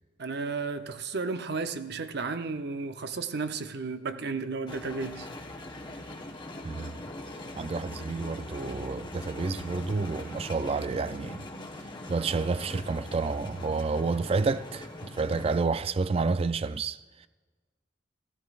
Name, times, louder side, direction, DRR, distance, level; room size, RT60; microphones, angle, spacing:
voice 1, 0.2-5.3, right 4 dB, 60° right, 0.7 m, -33 dB
sound 1, 4.7-15.6, left 1 dB, 25° left, 1.1 m, -42 dB
voice 2, 6.6-7.1 7.6-11.5 12.1-17.3, right 4 dB, 30° right, 0.3 m, -30 dB
16.0 x 15.5 x 2.4 m
head